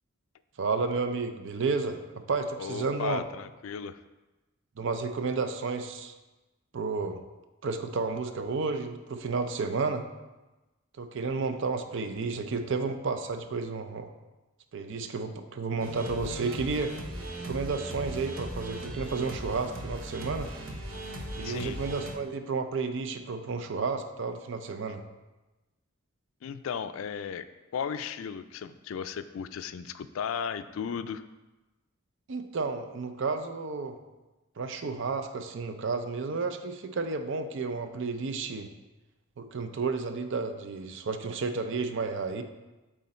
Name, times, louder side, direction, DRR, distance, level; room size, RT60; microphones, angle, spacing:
voice 1, 0.6-2.0 2.3-3.2 4.8-6.1 6.7-7.2 7.6-10.0 11.0-14.1 14.7-16.9 17.4-20.5 21.3-25.0 32.3-34.0 34.6-38.7 39.4-42.4, right 4 dB, 60° right, 8 dB, 0.5 m, -31 dB
voice 2, 2.6-4.0 21.4-21.8 26.4-27.5 27.7-31.2, left 7 dB, 70° left, 11 dB, 0.3 m, -35 dB
sound 1, 15.8-22.1, right 1 dB, 85° right, 1.1 m, -38 dB
8.1 x 3.8 x 4.2 m, 1.1 s
head